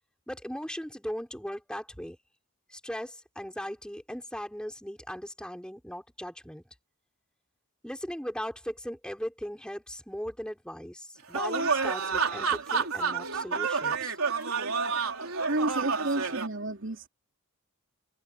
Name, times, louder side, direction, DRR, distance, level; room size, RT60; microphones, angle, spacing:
voice 1, 0.3-2.2 2.7-6.6 7.8-14.2, equal, 5° left, 5.4 m, -38 dB
sound 1, 11.3-16.5, right 5 dB, 80° right, 4.1 m, -29 dB
voice 2, 15.4-17.1, right 2 dB, 60° right, 3.4 m, -31 dB
head